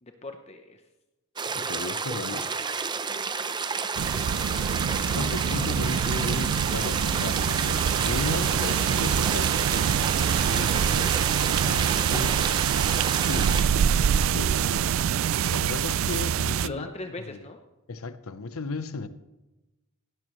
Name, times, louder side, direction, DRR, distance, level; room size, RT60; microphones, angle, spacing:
voice 1, 0.0-0.8 10.5-11.2 13.5-13.9 14.2-14.9 16.6-17.6, left 2 dB, 30° left, 0.7 m, -41 dB
sound 1, 1.4-13.6, right 5 dB, 20° right, 0.6 m, -31 dB
voice 2, 1.5-2.7 5.1-9.7 11.5-12.6 13.3-13.7 14.3-14.9 15.5-16.9 17.3-17.4 17.9-19.1, left 3 dB, 85° left, 0.8 m, -35 dB
sound 2, 4.0-16.7, right 8 dB, 70° right, 0.3 m, -25 dB
17.0 x 12.0 x 3.1 m
head